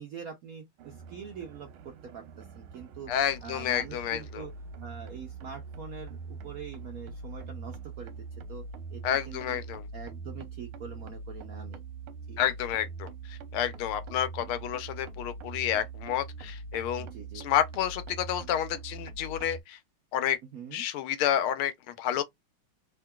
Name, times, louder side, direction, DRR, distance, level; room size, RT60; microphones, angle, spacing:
voice 1, 0.0-3.1 3.4-4.5 4.8-8.7 8.9-9.6 9.9-11.8 12.3-12.4 17.0-17.5 20.5-20.8, right 6 dB, 70° right, 0.8 m, -44 dB
sound 1, 0.8-19.6, right 4 dB, 90° right, 1.6 m, -43 dB
voice 2, 3.1-4.5 9.0-9.9 12.4-17.1 17.3-19.8 20.1-20.4 20.7-22.2, left 10 dB, 85° left, 1.5 m, -30 dB
3.7 x 2.5 x 2.2 m
omnidirectional pair, 2.3 m